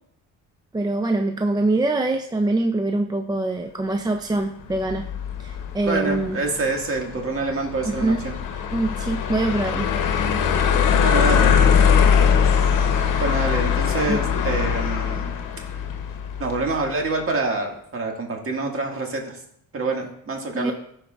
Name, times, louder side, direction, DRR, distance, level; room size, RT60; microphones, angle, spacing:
voice 1, 0.7-5.1 5.4-6.4 7.9-8.2 8.7-9.9 14.1-14.2 20.5-20.7, right 2 dB, 10° right, 5 dB, 0.4 m, -24 dB
sound 1, 4.7-16.9, left 7 dB, 70° left, 0.9 m, -21 dB
voice 2, 5.8-8.3 11.0-11.5 13.2-15.3 16.4-19.4 19.7-20.7, right 3 dB, 40° right, 1 dB, 1.8 m, -26 dB
13.5 x 4.7 x 2.4 m, 0.70 s
supercardioid pair, 75°, 33 cm